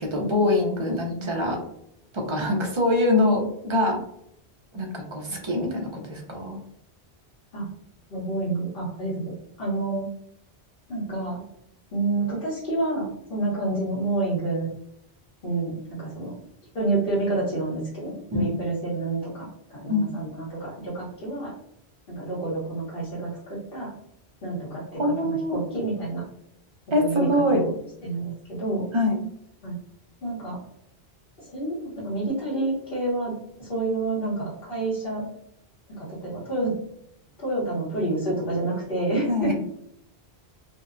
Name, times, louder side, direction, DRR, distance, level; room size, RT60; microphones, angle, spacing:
voice 1, 0.0-1.6 2.1-4.0 4.7-6.6 18.3-18.5 19.9-20.1 25.0-25.6 26.9-27.7 28.9-29.2 39.3-39.5, left 1 dB, 40° right, 1 dB, 0.4 m, -24 dB
voice 2, 8.1-9.2 9.6-10.1 10.9-11.4 11.9-14.7 15.4-16.4 16.7-21.5 22.1-23.9 24.4-26.2 27.0-27.7 28.0-28.9 29.6-29.8 30.2-30.6 31.4-35.3 35.9-36.7 37.4-39.5, right 2 dB, 55° left, -8 dB, 1.0 m, -29 dB
2.7 x 2.0 x 2.4 m, 0.74 s
omnidirectional pair, 1.1 m